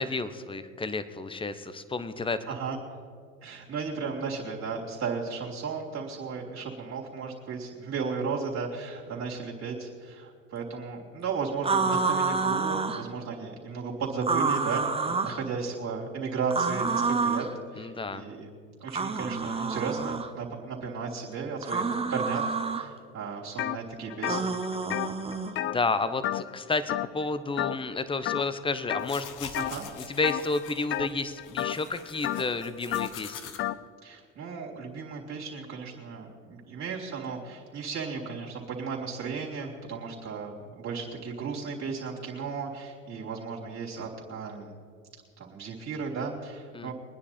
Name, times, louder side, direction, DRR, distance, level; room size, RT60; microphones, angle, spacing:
voice 1, 0.0-2.4 17.8-18.2 25.7-29.5 30.0-33.5 46.7-46.9, left 3 dB, 15° left, 12 dB, 1.0 m, -31 dB
voice 2, 3.4-17.5 17.7-18.5 18.8-24.5 29.6-29.8 34.0-44.7 45.4-46.9, right 5 dB, 45° right, -4 dB, 3.2 m, -35 dB
sound 1, 11.6-13.0 14.2-15.4 16.5-17.5 18.9-20.3 21.6-22.8 24.2-25.5, right 4 dB, 15° right, 1.1 m, -28 dB
sound 2, 23.6-23.8 24.1-26.6 26.9-27.3 27.6-27.9 28.2-29.1 29.5-29.9 30.2-33.8, left 13 dB, 35° left, 0.5 m, -32 dB
sound 3, 29.0-33.6, left 8 dB, 55° left, 1.5 m, -45 dB
23.0 x 9.7 x 4.4 m, 2.2 s
hypercardioid pair, 75°, 37 cm